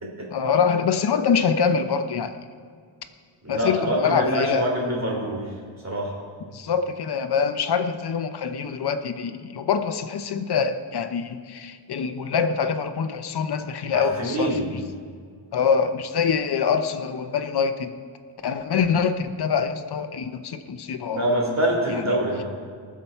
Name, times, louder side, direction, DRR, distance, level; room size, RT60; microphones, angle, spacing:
voice 1, 0.3-2.4 3.5-4.7 6.5-14.8 15.5-17.9 18.4-21.2 22.1-22.2, left 6 dB, 55° left, 8 dB, 0.8 m, -24 dB
voice 2, 3.4-5.5 5.8-6.1 13.9-14.7 21.1-22.4, right 1 dB, 35° right, -2 dB, 3.3 m, -25 dB
19.5 x 7.1 x 4.5 m, 2.1 s
wide cardioid pair, 145°, 47 cm